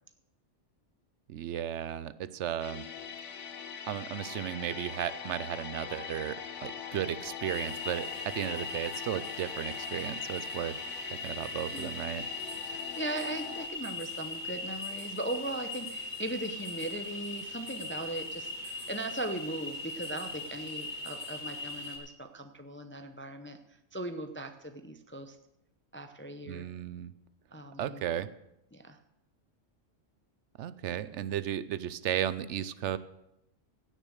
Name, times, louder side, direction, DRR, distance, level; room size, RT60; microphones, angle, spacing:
voice 1, 1.3-2.9 3.9-8.1 8.3-10.8 11.2-12.2 26.5-27.1 27.8-28.3 30.6-33.0, right 10 dB, 75° right, 15 dB, 0.9 m, -34 dB
sound 1, 2.6-13.7, left 7 dB, 80° left, 1.2 m, -42 dB
sound 2, 7.4-22.0, left 3 dB, 40° left, 2.3 m, -40 dB
voice 2, 12.7-23.6 23.9-25.4 25.9-26.7 27.5-28.0 28.7-29.0, right 2 dB, 15° left, 7 dB, 0.4 m, -39 dB
16.0 x 6.4 x 6.4 m, 0.85 s
omnidirectional pair, 1.3 m